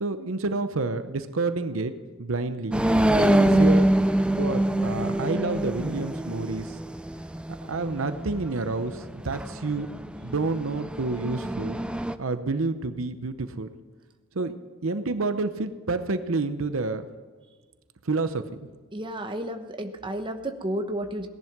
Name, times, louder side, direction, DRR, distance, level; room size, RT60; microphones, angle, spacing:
voice 1, 0.0-1.9 2.2-2.8 3.1-3.9 4.4-6.8 7.6-9.9 10.2-11.8 12.2-13.7 14.3-14.5 14.8-17.1 18.0-18.4, right 3 dB, 70° right, 10 dB, 0.8 m, -29 dB
sound 1, 2.7-12.1, right 1 dB, 5° right, 0.4 m, -25 dB
voice 2, 18.9-21.3, right 1 dB, 25° right, 5 dB, 1.0 m, -32 dB
17.5 x 11.0 x 6.0 m, 1.5 s
head